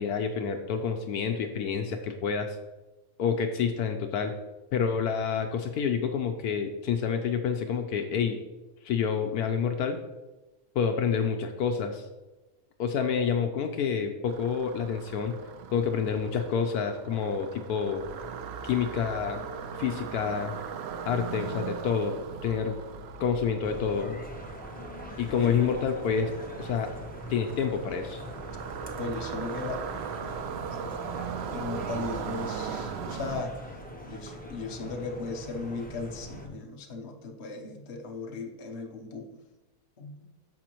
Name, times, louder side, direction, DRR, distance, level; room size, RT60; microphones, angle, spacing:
voice 1, 0.0-2.6 3.2-4.3 4.7-8.4 8.8-10.0 10.7-12.1 12.8-15.4 15.7-18.0 18.6-19.4 19.8-20.5 21.1-22.8 23.2-24.2 25.2-26.3 26.6-26.9 27.3-28.2, left 6 dB, 75° left, 5 dB, 1.1 m, -28 dB
sound 1, 14.3-33.4, right 7 dB, 80° right, 0.5 m, -39 dB
sound 2, 23.6-36.5, equal, 10° left, 0.4 m, -42 dB
voice 2, 29.0-29.9 30.7-30.8 31.5-33.6 34.1-39.4 40.0-40.3, left 3 dB, 45° left, 2 dB, 1.1 m, -37 dB
13.5 x 5.0 x 3.0 m, 1.1 s
omnidirectional pair, 1.7 m